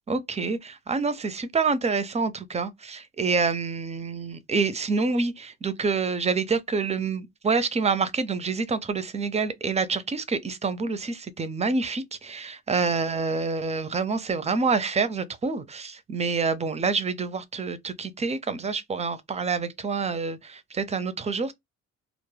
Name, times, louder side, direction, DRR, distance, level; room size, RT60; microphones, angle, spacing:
voice 1, 0.1-21.5, right 4 dB, 20° right, 0.4 m, -27 dB
2.2 x 2.0 x 3.2 m
cardioid pair, 90°, 30 cm